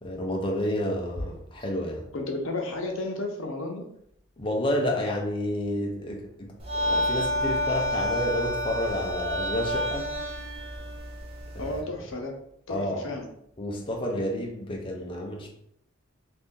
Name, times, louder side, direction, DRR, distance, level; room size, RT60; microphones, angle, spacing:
voice 1, 0.0-2.1 4.4-6.5 6.8-10.1 11.6-11.8 12.7-13.0 13.6-15.5, left 1 dB, 25° left, 0 dB, 0.5 m, -30 dB
voice 2, 2.1-3.8 11.6-12.3 12.7-13.3, left 2 dB, 70° left, 2 dB, 0.7 m, -32 dB
sound 1, 6.6-11.8, equal, 30° right, 0.5 m, -29 dB
2.6 x 2.6 x 3.6 m, 0.72 s
head